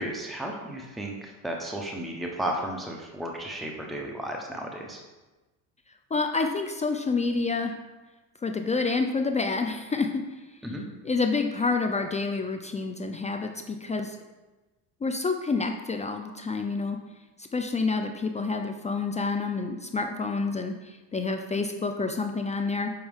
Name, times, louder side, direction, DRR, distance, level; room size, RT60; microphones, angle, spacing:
voice 1, 0.0-5.0 10.6-10.8, right 1 dB, ahead, 0 dB, 0.8 m, -34 dB
voice 2, 6.1-7.7 8.4-10.2 11.0-14.2 15.0-17.0 17.5-22.9, left 4 dB, 20° left, 5 dB, 0.3 m, -28 dB
7.2 x 4.3 x 3.5 m, 1.2 s
supercardioid pair, 95°, 41 cm